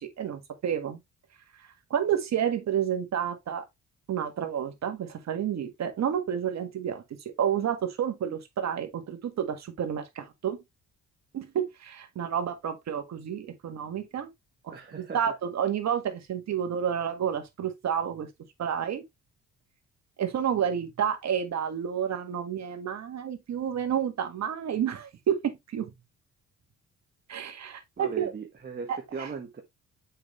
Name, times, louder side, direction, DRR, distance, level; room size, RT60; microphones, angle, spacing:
voice 1, 0.2-1.0 1.9-3.6 4.1-7.0 7.4-10.6 11.3-14.3 14.6-14.7 15.1-18.3 18.6-19.0 20.2-25.9 27.3-28.3 28.9-29.3, right 8 dB, 60° right, 1.8 m, -30 dB
voice 2, 14.7-15.2 28.0-29.6, right 5 dB, 30° right, 1.5 m, -38 dB
6.9 x 5.2 x 3.1 m
cardioid pair, 90°, 30 cm